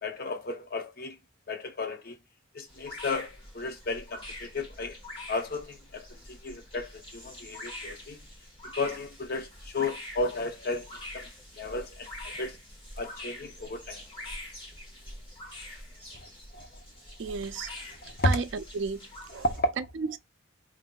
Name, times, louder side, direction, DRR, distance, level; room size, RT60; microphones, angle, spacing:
voice 1, 0.0-1.2 1.5-2.2 2.5-5.0 5.3-8.2 8.8-10.9 11.1-11.3 11.6-12.6 13.0-14.0 16.1-16.3 16.5-16.7 18.0-18.3 19.4-19.7, left 2 dB, 45° left, 0.7 m, -33 dB
sound 1, 2.7-19.6, left 1 dB, 25° left, 1.2 m, -45 dB
voice 2, 17.2-17.7 18.2-19.0 19.3-19.4 19.8-20.2, right 5 dB, 60° right, 0.3 m, -32 dB
5.4 x 2.5 x 2.3 m
head